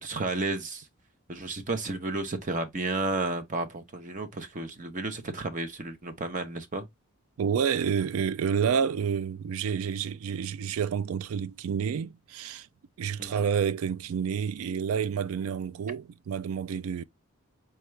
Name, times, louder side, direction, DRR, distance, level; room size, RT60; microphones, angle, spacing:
voice 1, 0.0-0.9 1.3-6.9 13.2-13.4, right 2 dB, 35° right, 0.6 m, -32 dB
voice 2, 7.4-12.7 13.0-17.0, right 7 dB, 70° right, 0.3 m, -29 dB
5.6 x 2.3 x 3.1 m
head